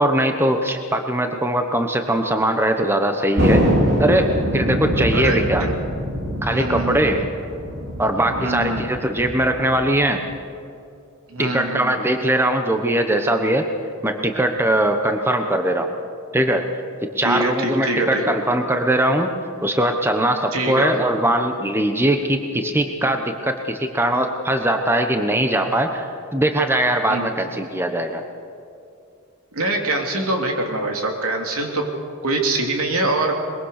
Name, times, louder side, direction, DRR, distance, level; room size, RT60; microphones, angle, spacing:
voice 1, 0.0-3.7 4.0-5.6 6.4-7.3 8.0-10.2 11.4-13.6 14.0-15.9 16.3-16.6 17.2-19.3 19.6-26.1 26.3-28.2, right 1 dB, 10° right, 5 dB, 1.0 m, -20 dB
Thunder, 3.4-10.2, equal, 50° right, 3.3 m, -23 dB
voice 2, 5.1-5.7 6.4-7.3 8.4-8.8 11.3-12.0 17.2-18.2 20.5-20.9 27.1-27.3 29.5-31.9 32.2-33.3, right 2 dB, 75° right, 2 dB, 3.1 m, -24 dB
22.5 x 22.0 x 6.6 m, 2.5 s
head